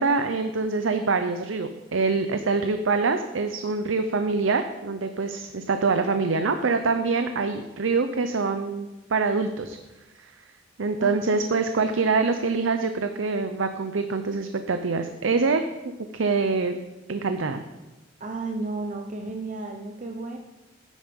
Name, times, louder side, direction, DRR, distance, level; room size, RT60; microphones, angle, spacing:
voice 1, 0.0-9.8 10.2-10.3 10.8-15.6 16.1-16.8 17.1-17.6, right 4 dB, 90° right, 8 dB, 0.6 m, -25 dB
voice 2, 11.0-11.4 18.2-20.4, right 3 dB, 40° right, 3 dB, 0.7 m, -33 dB
10.0 x 9.0 x 5.3 m, 1.1 s
head